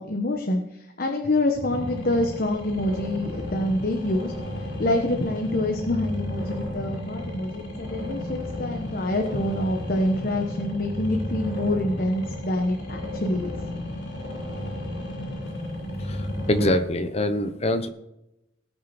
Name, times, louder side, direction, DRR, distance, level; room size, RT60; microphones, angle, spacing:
voice 1, 0.0-4.3 4.6-13.6, left 1 dB, 45° left, 2 dB, 1.2 m, -26 dB
sound 1, 1.5-16.7, left 1 dB, 70° left, 5.3 m, -33 dB
voice 2, 16.5-17.9, left 1 dB, 30° left, 9 dB, 0.9 m, -23 dB
19.0 x 6.6 x 4.3 m, 0.87 s
head